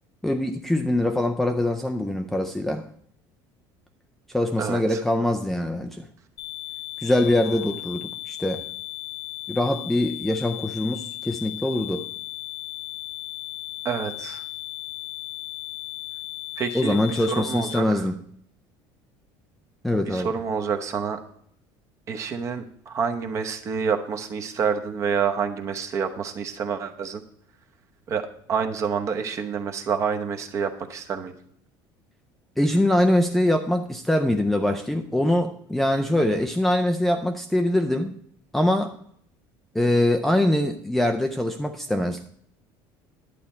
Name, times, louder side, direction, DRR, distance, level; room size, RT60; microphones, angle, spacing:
voice 1, 0.2-2.9 4.3-6.1 7.0-8.6 9.5-12.1 16.7-18.1 19.8-20.3 32.6-38.2 38.5-38.9 39.7-42.2, left 1 dB, 5° left, 4 dB, 0.4 m, -23 dB
voice 2, 4.6-5.0 7.4-7.7 13.8-14.4 16.6-18.1 20.1-21.2 22.1-27.2 28.1-31.3, right 6 dB, 30° right, 6 dB, 0.9 m, -28 dB
sound 1, 6.4-17.8, left 19 dB, 50° left, 0.9 m, -36 dB
11.0 x 8.2 x 4.3 m, 0.65 s
cardioid pair, 170°, 9 cm